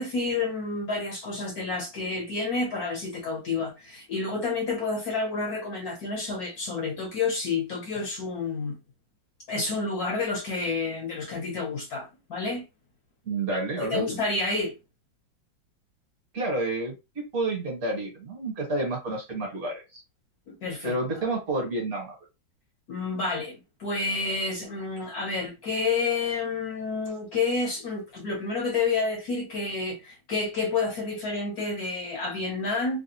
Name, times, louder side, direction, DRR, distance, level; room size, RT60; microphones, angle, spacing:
voice 1, 0.0-8.8 9.5-12.6 13.5-14.7 20.5-21.0 22.9-33.0, left 3 dB, 65° left, 1.0 m, -29 dB
voice 2, 13.2-14.1 16.3-20.0 20.8-22.1, right 2 dB, 50° right, 1.4 m, -30 dB
3.3 x 2.3 x 2.8 m
omnidirectional pair, 2.2 m